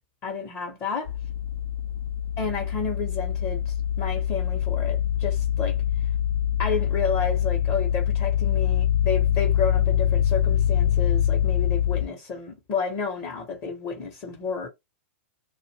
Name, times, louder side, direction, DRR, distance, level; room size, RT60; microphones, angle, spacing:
voice 1, 0.2-1.1 2.4-6.1 6.6-14.7, left 5 dB, 35° left, 0.9 m, -31 dB
sound 1, 1.1-12.0, left 10 dB, 60° left, 0.5 m, -24 dB
2.6 x 2.4 x 2.9 m
hypercardioid pair, 135°, 7 cm